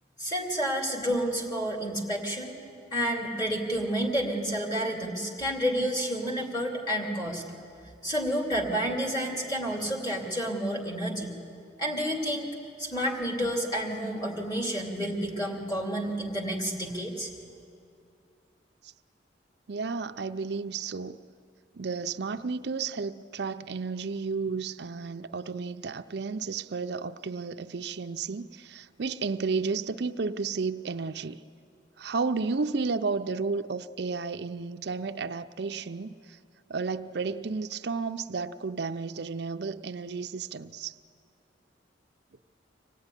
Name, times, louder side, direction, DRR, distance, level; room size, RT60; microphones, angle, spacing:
voice 1, 0.2-2.5 2.9-7.4 8.0-11.4 11.8-12.5 12.8-17.3, equal, 20° left, 2.7 m, -30 dB
voice 2, 19.7-21.2 21.7-31.4 32.0-36.4 36.7-41.0, right 4 dB, 65° right, 0.6 m, -32 dB
25.0 x 17.5 x 9.8 m
head